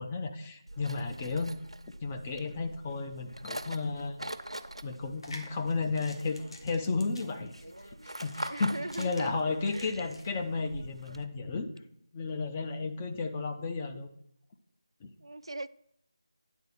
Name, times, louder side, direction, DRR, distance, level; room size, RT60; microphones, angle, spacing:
voice 1, 0.0-1.5 2.0-4.2 4.8-7.6 8.0-11.7 12.1-14.1 15.0-15.1, left 4 dB, 15° left, 0.4 m, -33 dB
sound 1, 0.7-11.2, right 1 dB, 85° right, 0.8 m, -44 dB
sound 2, 5.0-10.3, left 1 dB, 60° left, 1.6 m, -50 dB
voice 2, 8.5-9.3 9.7-10.1 12.7-12.8 15.2-15.7, right 2 dB, 65° right, 0.4 m, -40 dB
9.8 x 4.0 x 6.5 m
figure-of-eight pair, 165°, 3 cm